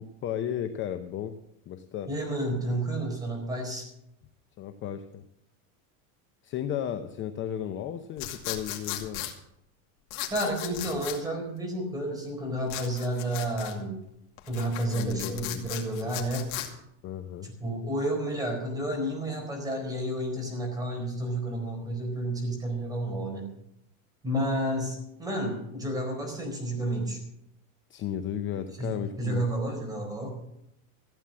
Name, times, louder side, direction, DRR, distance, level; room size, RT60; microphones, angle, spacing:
voice 1, 0.0-1.3 1.7-2.1 4.6-5.2 6.4-9.3 14.9-15.6 17.0-17.5 27.9-29.5, left 10 dB, 30° left, 9 dB, 0.7 m, -34 dB
voice 2, 2.1-3.9 10.3-14.0 14.5-16.5 17.4-23.5 24.2-27.2 28.8-28.9 29.2-30.4, right 1 dB, 10° right, 1 dB, 4.4 m, -31 dB
sound 1, 8.2-9.3 10.1-11.2 12.7-13.7 14.4-16.7, left 13 dB, 70° left, 2.5 m, -36 dB
15.0 x 9.2 x 7.5 m, 0.80 s
supercardioid pair, 155°, 42 cm